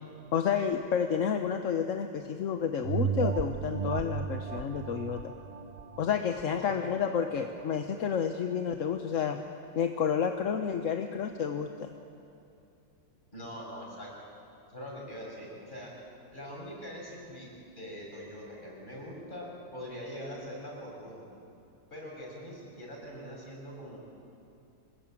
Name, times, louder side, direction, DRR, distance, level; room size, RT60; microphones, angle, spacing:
voice 1, 0.3-5.3 6.0-9.4 9.7-11.9, left 7 dB, 50° left, 6 dB, 1.1 m, -30 dB
sound 1, 2.8-7.8 8.3-8.4, right 7 dB, 65° right, 0.4 m, -35 dB
voice 2, 6.5-6.8 13.3-14.1 14.7-15.9 16.3-21.3 21.9-24.0, equal, 25° left, -3 dB, 6.9 m, -43 dB
26.0 x 20.5 x 9.0 m, 2.7 s
omnidirectional pair, 2.0 m